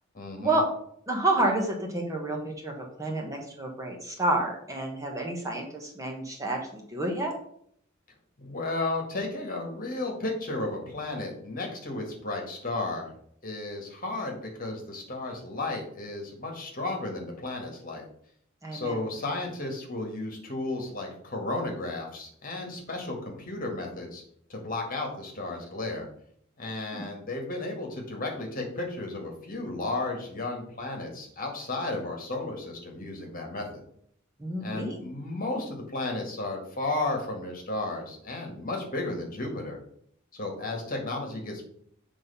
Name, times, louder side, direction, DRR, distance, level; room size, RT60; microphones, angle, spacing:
voice 1, 0.1-0.6 8.4-13.1 13.4-18.1 18.7-24.2 24.5-26.1 26.6-33.8 34.6-39.8 40.3-41.7, left 2 dB, 40° left, 1 dB, 1.8 m, -33 dB
voice 2, 1.1-7.3 18.6-19.0 26.9-27.1 34.4-35.0, right 2 dB, 15° right, 0 dB, 1.1 m, -29 dB
7.8 x 3.7 x 5.5 m, 0.66 s
head